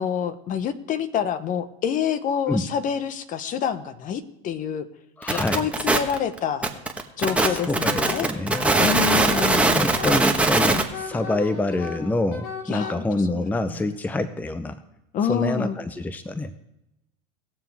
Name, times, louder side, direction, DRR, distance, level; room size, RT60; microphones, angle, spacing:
voice 1, 0.0-4.9 5.3-6.7 7.2-8.3 8.8-9.8 12.7-13.0 13.7-13.8 15.1-15.8, left 8 dB, 45° left, 12 dB, 1.0 m, -27 dB
voice 2, 5.2-5.7 7.4-8.7 9.8-14.8 15.3-16.5, left 2 dB, 10° left, 11 dB, 0.6 m, -26 dB
sound 1, 5.2-10.8, right 2 dB, 5° right, 1.3 m, -21 dB
Wind instrument woodwind instrument, 7.3-12.9, left 5 dB, 90° left, 2.1 m, -35 dB
19.5 x 7.3 x 3.5 m, 0.91 s
supercardioid pair, 105°, 19 cm